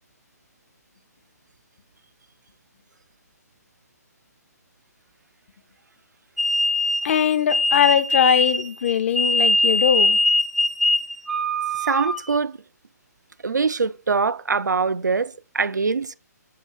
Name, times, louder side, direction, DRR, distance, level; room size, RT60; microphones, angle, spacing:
sound 1, 6.4-12.4, left 1 dB, ahead, 0.3 m, -21 dB
voice 1, 7.0-10.2, left 9 dB, 45° left, 0.6 m, -21 dB
voice 2, 11.8-12.6 13.4-16.1, right 4 dB, 90° right, 0.4 m, -23 dB
6.6 x 3.0 x 5.6 m
figure-of-eight pair, 135°, 9 cm